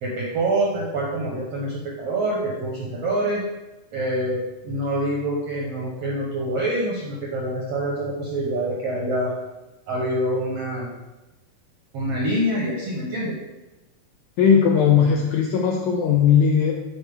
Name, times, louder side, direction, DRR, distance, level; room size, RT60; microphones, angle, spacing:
voice 1, 0.0-3.4 3.9-9.3 9.9-10.9 11.9-13.3, right 1 dB, 70° right, -3 dB, 1.5 m, -26 dB
voice 2, 14.4-16.7, left 7 dB, 90° left, 1 dB, 1.7 m, -18 dB
10.0 x 4.3 x 3.5 m, 1.0 s
omnidirectional pair, 4.1 m